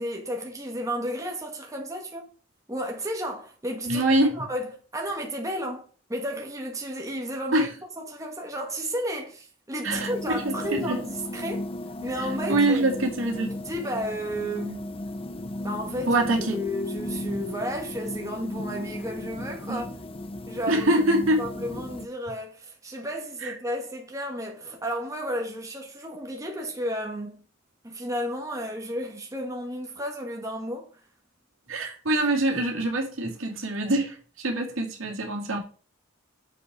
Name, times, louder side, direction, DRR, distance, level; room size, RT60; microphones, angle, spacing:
voice 1, 0.0-2.3 2.7-4.0 4.4-7.7 8.0-11.6 12.0-12.8 13.5-14.8 15.6-16.2 16.5-19.9 20.5-20.9 21.4-27.4 27.8-30.9, equal, 15° right, 1.3 m, -32 dB
voice 2, 3.9-4.3 7.5-7.7 9.8-11.0 12.5-13.5 16.1-16.6 19.7-19.8 20.7-21.4 23.4-23.5 31.7-35.6, right 1 dB, 75° right, 2.2 m, -24 dB
sound 1, 9.9-22.1, left 1 dB, 30° left, 0.6 m, -35 dB
7.2 x 5.7 x 4.7 m
head